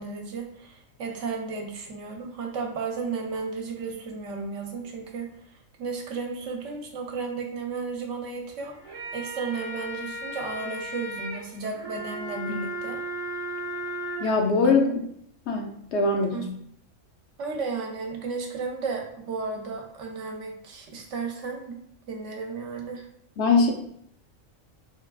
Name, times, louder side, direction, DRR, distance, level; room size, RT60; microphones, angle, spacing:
voice 1, 0.0-8.8 9.1-13.0 14.6-14.8 16.3-16.4 17.4-21.8 22.1-23.1, right 4 dB, 70° right, 2 dB, 1.0 m, -34 dB
sound 1, 8.7-14.3, right 1 dB, 35° right, 0.6 m, -35 dB
voice 2, 14.2-14.9 15.5-16.5 23.4-23.7, left 4 dB, 65° left, 1 dB, 0.8 m, -22 dB
3.4 x 3.4 x 2.4 m, 0.71 s
omnidirectional pair, 1.4 m